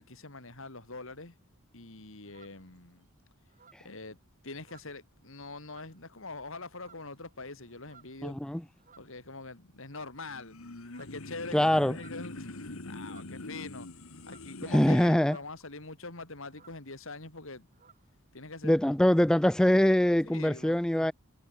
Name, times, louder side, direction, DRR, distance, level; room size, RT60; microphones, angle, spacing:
voice 1, 0.1-1.3 1.7-3.1 3.8-4.2 4.4-8.4 9.0-10.5 11.0-13.9 14.3-17.7 18.3-18.7 20.2-20.8, left 3 dB, 65° left, 3.4 m, -44 dB
sound 1, 1.9-3.0 3.4-5.3 5.6-6.1 6.6-9.5 9.8-10.4 10.7-15.7 16.0-16.1 16.3-18.2, right 6 dB, 40° right, 3.4 m, -62 dB
voice 2, 8.2-8.6 11.5-12.0 14.7-15.4 18.6-21.1, left 1 dB, 5° left, 0.3 m, -23 dB
sound 2, 10.2-15.1, left 2 dB, 85° left, 2.0 m, -44 dB
head